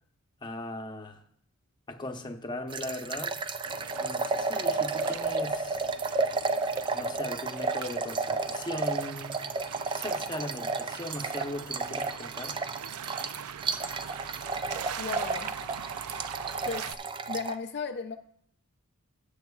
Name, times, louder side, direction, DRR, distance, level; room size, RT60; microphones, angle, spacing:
voice 1, 0.4-1.2 1.9-3.4 4.0-5.9 6.9-9.3 9.9-12.6, left 1 dB, 20° left, 0.8 m, -38 dB
sound 1, 2.7-17.5, right 4 dB, 20° right, 0.4 m, -32 dB
sound 2, 3.6-16.9, right 8 dB, 90° right, 0.5 m, -42 dB
voice 2, 15.0-15.5 16.7-16.9 17.3-18.2, left 5 dB, 50° left, 0.4 m, -35 dB
18.0 x 7.2 x 2.4 m
head